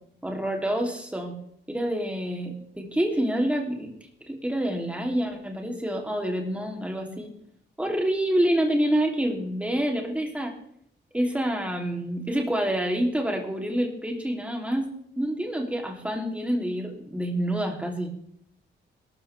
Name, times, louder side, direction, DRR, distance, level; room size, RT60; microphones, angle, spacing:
voice 1, 0.2-1.4 1.7-4.0 4.3-7.3 7.8-10.5 11.1-18.1, right 1 dB, 5° right, 2 dB, 2.8 m, -27 dB
20.5 x 12.5 x 3.3 m, 0.67 s
wide cardioid pair, 150°, 19 cm